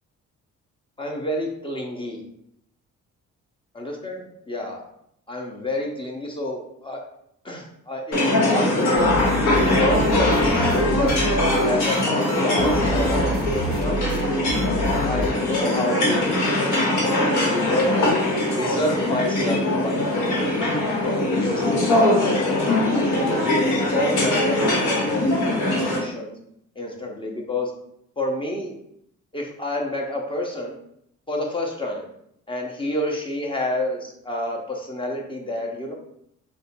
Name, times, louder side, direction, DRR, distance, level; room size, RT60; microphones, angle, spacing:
voice 1, 1.0-2.2 3.8-4.8 5.3-7.0 7.4-9.1 9.6-11.1 11.6-14.0 14.3-14.5 15.0-16.8 17.1-18.1 18.5-19.9 21.0-22.7 22.9-23.4 23.7-26.4 26.8-27.7 28.2-28.7 29.3-30.7 31.3-32.0 32.5-35.9, left 1 dB, 15° left, 0 dB, 0.6 m, -29 dB
sound 1, 8.1-26.0, left 1 dB, 85° left, 1.1 m, -21 dB
sound 2, 9.0-15.3, right 1 dB, 30° right, 0.6 m, -28 dB
2.7 x 2.2 x 4.1 m, 0.74 s
cardioid pair, 90°, 30 cm